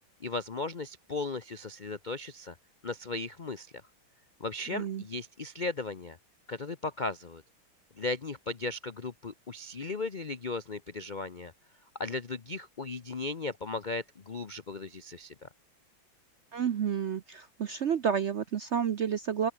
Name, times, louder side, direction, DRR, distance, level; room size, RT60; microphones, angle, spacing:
voice 1, 0.2-2.6 2.8-3.7 4.4-6.2 6.5-7.4 8.0-11.5 12.0-15.5, left 3 dB, 70° left, 0.4 m, -36 dB
voice 2, 4.7-5.0 16.5-19.5, right 7 dB, 70° right, 0.6 m, -30 dB
open air
omnidirectional pair, 2.2 m